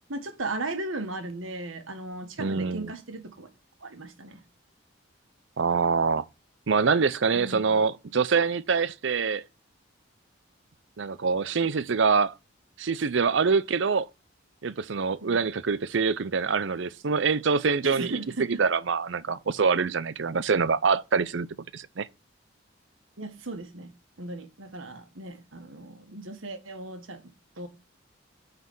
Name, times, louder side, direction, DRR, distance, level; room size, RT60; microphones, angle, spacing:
voice 1, 0.1-3.5 3.8-4.4 7.3-7.9 15.2-15.5 17.8-18.6 23.2-23.9 24.2-27.7, right 2 dB, 85° right, 1.6 m, -36 dB
voice 2, 2.4-2.9 5.6-6.2 6.7-9.4 11.0-12.3 12.8-14.1 14.6-18.2 18.6-21.5 21.7-22.1, right 5 dB, 65° right, 0.5 m, -25 dB
9.6 x 4.1 x 5.4 m
head